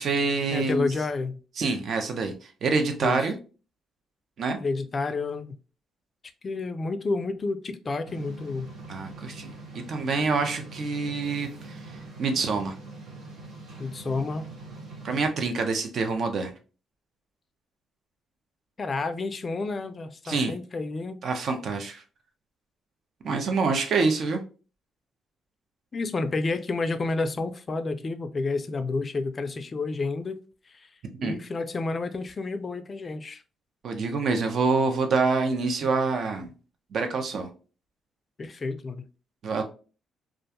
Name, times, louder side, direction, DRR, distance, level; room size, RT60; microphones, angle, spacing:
voice 1, 0.0-0.9 1.6-3.3 4.4-4.6 8.9-9.5 9.9-12.7 15.0-16.5 20.2-20.5 21.2-22.0 23.2-24.4 31.1-31.4 33.8-36.5 36.9-37.5 39.4-39.6, right 4 dB, 60° right, 0.6 m, -26 dB
voice 2, 0.5-1.4 3.0-3.3 4.6-5.6 6.4-8.7 13.8-14.4 18.8-21.2 25.9-30.4 30.7-30.9 31.2-33.4 38.4-39.0, left 3 dB, 35° left, 0.3 m, -30 dB
sound 1, 8.1-15.3, right 2 dB, 80° right, 1.2 m, -43 dB
2.4 x 2.2 x 2.8 m
cardioid pair, 90°, 0 cm